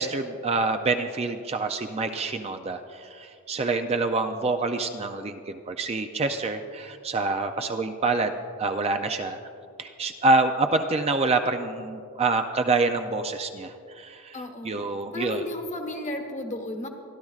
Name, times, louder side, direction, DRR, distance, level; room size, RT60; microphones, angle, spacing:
voice 1, 0.0-8.3 8.6-9.4 9.8-15.4, right 3 dB, 30° right, 6 dB, 0.4 m, -26 dB
voice 2, 14.3-14.8 15.1-16.9, left 1 dB, 35° left, 4 dB, 1.2 m, -33 dB
27.5 x 11.5 x 2.4 m, 2.4 s
head